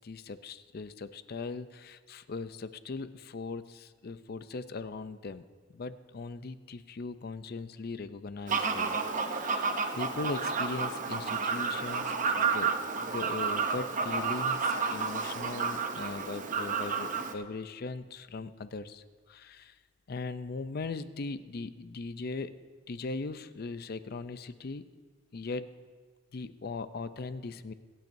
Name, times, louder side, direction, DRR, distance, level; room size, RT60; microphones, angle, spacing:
voice 1, 0.0-5.4 5.7-9.0 9.3-9.7 9.9-19.7 20.1-22.5 22.9-24.8 25.3-25.7 26.3-27.7, left 3 dB, 50° left, 13 dB, 0.5 m, -39 dB
Fowl, 8.5-17.3, right 5 dB, 40° right, 0.7 m, -31 dB
26.5 x 9.1 x 2.7 m, 1.5 s
head